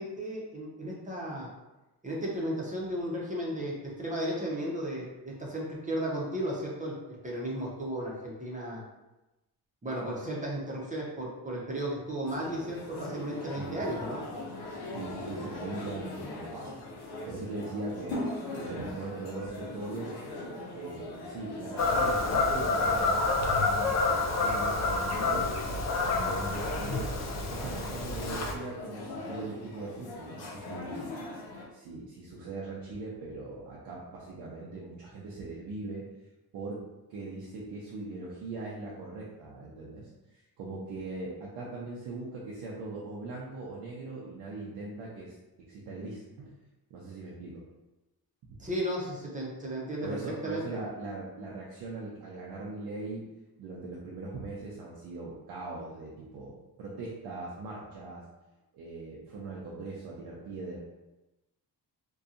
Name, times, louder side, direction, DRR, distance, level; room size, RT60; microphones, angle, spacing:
voice 1, 0.0-1.5 2.0-8.8 9.8-14.2 48.6-50.6, right 1 dB, 20° right, -4 dB, 0.7 m, -34 dB
sound 1, 12.3-31.6, left 2 dB, 80° left, 0.7 m, -41 dB
voice 2, 14.9-16.7 17.0-18.2 18.6-20.3 20.7-23.9 24.3-27.1 27.4-31.1 31.7-36.0 36.5-46.5 46.9-47.6 48.5-48.6 50.0-53.3 53.6-58.3 58.7-60.8, right 3 dB, 90° right, -5 dB, 0.6 m, -40 dB
Fowl / Bird vocalization bird call bird song, 21.8-28.5, left 3 dB, 45° left, 0.5 m, -28 dB
2.7 x 2.3 x 2.5 m, 1.0 s
cardioid pair, 100°, 39 cm